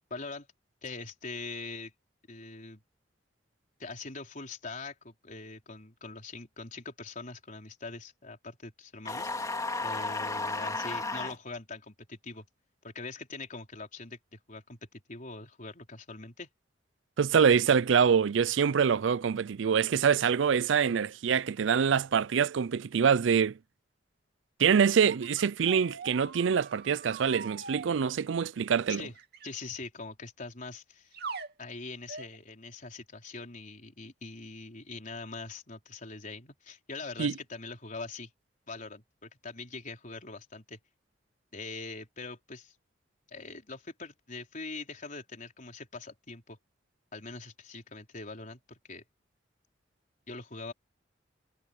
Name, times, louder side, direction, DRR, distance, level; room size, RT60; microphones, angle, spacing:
voice 1, 0.1-0.5 0.8-1.9 2.3-2.8 3.8-12.5 12.8-16.5 28.9-29.1 29.4-31.2 31.6-38.3 38.7-40.8 41.5-42.7 43.3-46.6 47.1-49.0 50.3-50.7, left 3 dB, 45° left, 4.4 m, -43 dB
sound 1, 9.0-11.4, left 3 dB, 20° left, 2.8 m, -33 dB
voice 2, 17.2-23.5 24.6-29.0 37.2-37.3, right 7 dB, 85° right, 0.4 m, -25 dB
sound 2, 24.8-27.9 29.2-29.5 31.1-31.5 32.1-32.4, right 4 dB, 60° right, 2.9 m, -42 dB
head